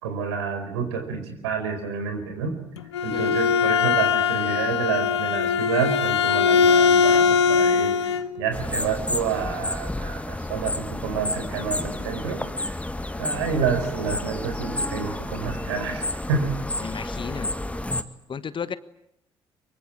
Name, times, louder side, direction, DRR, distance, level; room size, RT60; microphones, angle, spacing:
voice 1, 0.0-2.6 3.0-8.0 8.4-12.7 13.2-16.5, right 6 dB, 75° right, 6 dB, 4.6 m, -28 dB
Bowed string instrument, 2.8-8.3, left 6 dB, 80° left, 1.0 m, -20 dB
sound 1, 8.5-18.0, left 1 dB, 10° left, 1.8 m, -30 dB
voice 2, 16.8-17.5 18.3-18.8, left 6 dB, 35° left, 15 dB, 1.3 m, -33 dB
24.5 x 23.5 x 8.8 m, 0.80 s
figure-of-eight pair, 45°, 14 cm